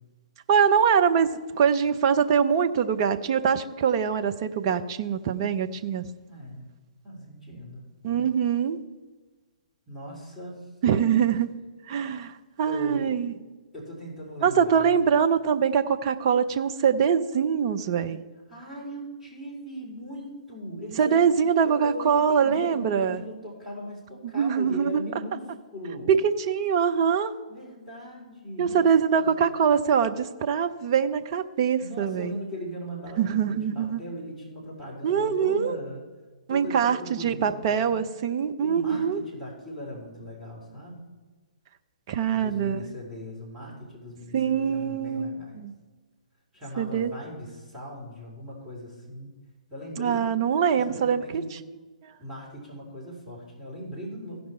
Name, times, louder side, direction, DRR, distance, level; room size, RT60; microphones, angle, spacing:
voice 1, 0.5-6.1 8.0-8.8 10.8-11.5 11.9-13.3 14.4-18.2 21.0-23.2 24.3-25.0 26.1-27.3 28.6-32.3 33.2-34.0 35.0-35.8 36.5-39.2 42.1-42.8 44.3-45.3 45.6-45.7 46.8-47.1 50.0-51.4 52.0-52.1, right 7 dB, 40° right, 8 dB, 0.6 m, -23 dB
voice 2, 6.3-6.6 7.0-7.9 9.9-10.7 12.6-13.1 13.7-14.9 18.5-21.3 21.6-25.4 25.7-26.2 27.5-29.4 31.8-36.0 36.5-38.0 38.6-41.1 42.3-45.6 46.5-49.3 49.7-50.3 50.7-51.5 52.2-54.5, equal, 10° right, -7 dB, 3.3 m, -39 dB
15.5 x 5.4 x 4.4 m, 1.3 s
figure-of-eight pair, 120°, 4 cm